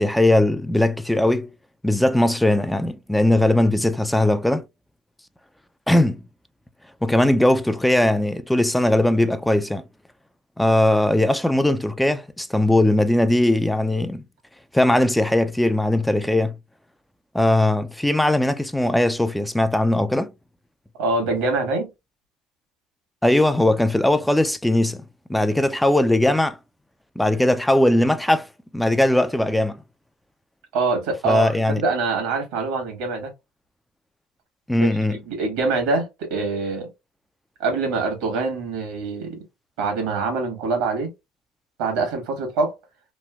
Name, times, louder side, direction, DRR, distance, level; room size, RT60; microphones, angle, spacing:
voice 1, 0.0-1.5 1.8-4.6 5.9-6.2 7.0-9.8 10.6-14.2 14.7-16.5 17.3-20.3 23.2-25.0 25.3-26.6 27.2-28.5 28.7-29.8 31.2-31.8 34.7-35.2, left 1 dB, 5° left, 0.4 m, -19 dB
voice 2, 21.0-21.9 30.7-33.3 35.1-36.9 37.6-39.4 39.8-41.1 41.8-42.7, right 3 dB, 80° right, 1.3 m, -24 dB
3.1 x 2.6 x 2.3 m
hypercardioid pair, 80°, 0 cm